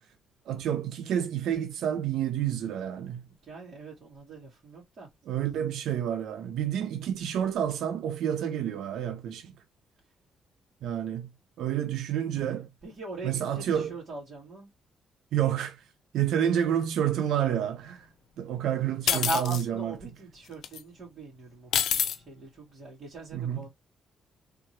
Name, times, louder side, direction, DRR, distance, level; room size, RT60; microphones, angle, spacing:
voice 1, 0.5-3.2 5.3-9.5 10.8-11.3 11.6-12.7 13.2-13.9 15.3-15.8 16.1-18.1 18.4-19.9 23.3-23.6, right 10 dB, 80° right, 0.6 m, -29 dB
voice 2, 3.3-5.1 12.8-14.7 19.1-23.7, right 2 dB, 45° right, 2.0 m, -40 dB
sound 1, 19.1-19.6 20.6-20.8 21.7-22.2, left 9 dB, 75° left, 0.5 m, -26 dB
3.4 x 2.9 x 3.1 m
cardioid pair, 90°, 0 cm